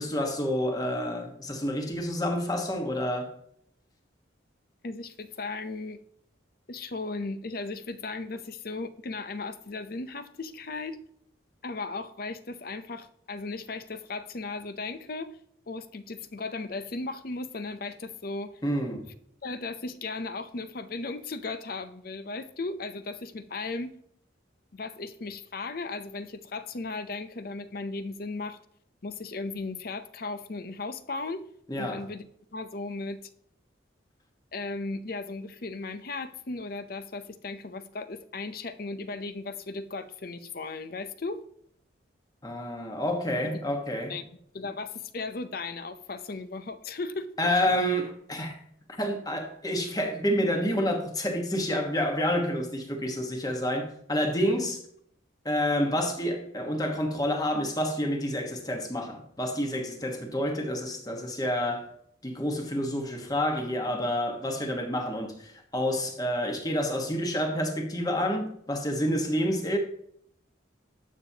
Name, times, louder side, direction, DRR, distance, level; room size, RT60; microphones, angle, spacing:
voice 1, 0.0-3.3 18.6-19.0 31.7-32.0 42.4-44.2 47.4-48.6 49.0-54.8 55.4-61.9 62.2-69.8, equal, 20° left, 1.3 m, -29 dB
voice 2, 4.8-6.0 6.7-11.0 11.6-15.3 15.7-18.5 19.4-23.9 24.7-28.6 29.0-31.4 31.8-32.2 32.5-33.2 34.5-41.4 43.3-43.6 44.1-44.2 44.5-47.7, left 3 dB, 50° left, 0.6 m, -36 dB
12.0 x 7.1 x 2.8 m
head